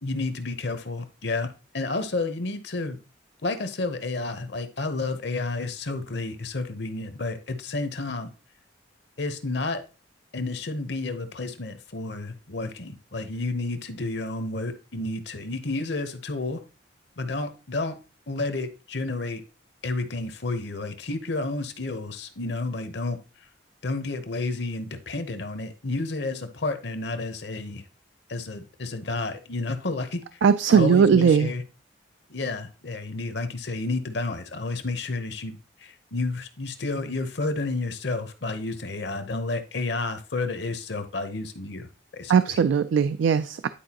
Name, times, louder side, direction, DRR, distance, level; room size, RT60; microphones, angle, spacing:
voice 1, 0.0-3.0 3.4-8.3 9.2-9.8 10.3-16.6 17.2-18.0 18.3-19.4 19.8-23.2 23.8-27.8 28.3-30.4 30.7-31.6 32.3-42.3, left 3 dB, 60° left, 0.9 m, -31 dB
voice 2, 30.4-31.5 42.3-43.7, right 6 dB, 70° right, 0.3 m, -19 dB
10.0 x 4.6 x 2.9 m
head